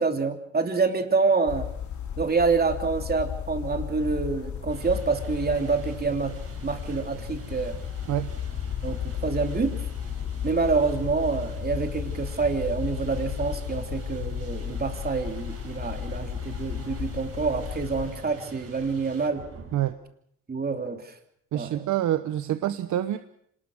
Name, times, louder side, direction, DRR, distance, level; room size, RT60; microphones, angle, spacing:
voice 1, 0.0-1.7 2.2-6.3 6.6-7.8 8.8-9.8 10.4-19.4 20.5-21.1 21.5-21.9, right 4 dB, 30° right, 5 dB, 3.0 m, -27 dB
sound 1, 1.5-18.1, left 9 dB, 75° left, 4.1 m, -34 dB
sound 2, 4.7-19.9, right 5 dB, 55° right, 6.0 m, -45 dB
voice 2, 21.5-23.2, right 12 dB, 75° right, 11 dB, 1.0 m, -26 dB
26.0 x 19.5 x 6.3 m, 0.70 s
cardioid pair, 90°, 30 cm